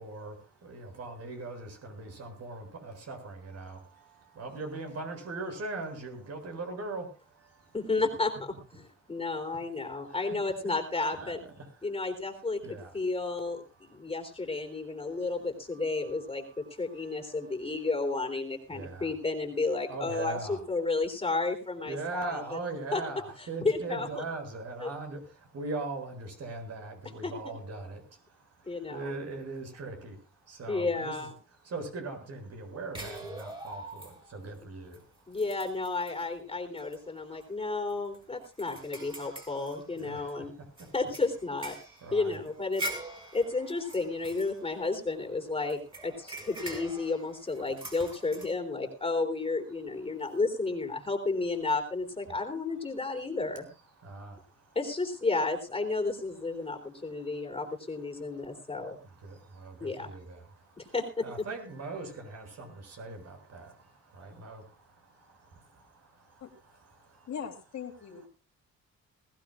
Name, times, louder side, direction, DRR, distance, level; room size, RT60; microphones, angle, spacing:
voice 1, 0.0-7.8 9.0-9.3 9.9-10.4 11.1-11.9 12.6-13.0 13.8-14.1 14.6-15.3 15.7-17.6 18.7-19.1 19.9-20.6 21.9-31.3 31.6-35.4 37.1-37.7 39.9-41.0 42.0-42.4 46.1-46.4 50.1-50.4 54.0-54.8 56.6-57.6 58.1-58.8 59.0-67.3, right 3 dB, 55° right, 3 dB, 7.1 m, -42 dB
voice 2, 7.7-11.4 11.8-22.6 22.9-23.0 23.6-24.2 24.8-24.9 27.2-27.5 28.7-29.1 30.7-31.3 35.3-40.5 40.9-41.8 42.1-42.8 43.3-53.7 54.8-59.0 59.8-60.1 60.8-61.3, left 3 dB, 20° left, 4 dB, 3.6 m, -32 dB
sound 1, 32.9-34.4 34.9-35.0 35.3-36.2 36.8-37.0 37.3-37.4 37.9-40.3 40.8-45.2 45.7-48.5, right 1 dB, 15° right, 6.4 m, -43 dB
voice 3, 67.3-68.3, left 7 dB, 60° left, 3 dB, 3.2 m, -40 dB
21.0 x 16.0 x 2.4 m, 0.31 s
cardioid pair, 90°, 30 cm